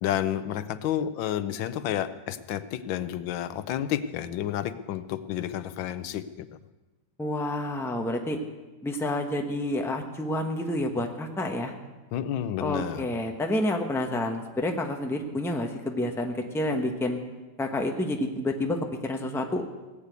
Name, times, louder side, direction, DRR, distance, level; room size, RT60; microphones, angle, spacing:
voice 1, 0.0-6.5 12.1-13.1, left 11 dB, 85° left, 13 dB, 1.4 m, -30 dB
voice 2, 7.2-8.4 8.8-11.7 12.6-17.2 17.6-19.7, left 1 dB, ahead, 3 dB, 0.8 m, -29 dB
18.0 x 8.3 x 8.2 m, 1.2 s
omnidirectional pair, 2.0 m